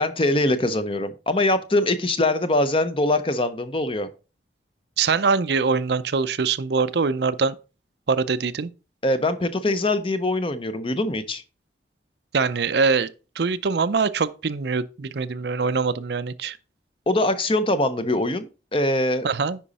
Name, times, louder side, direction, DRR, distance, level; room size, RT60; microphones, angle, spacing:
voice 1, 0.0-4.1 9.0-11.4 17.1-19.3, left 1 dB, 30° left, 0.7 m, -23 dB
voice 2, 5.0-7.6 8.1-8.7 12.3-13.1 13.4-16.6 19.2-19.6, right 5 dB, 65° right, 0.5 m, -23 dB
10.0 x 5.1 x 4.1 m
head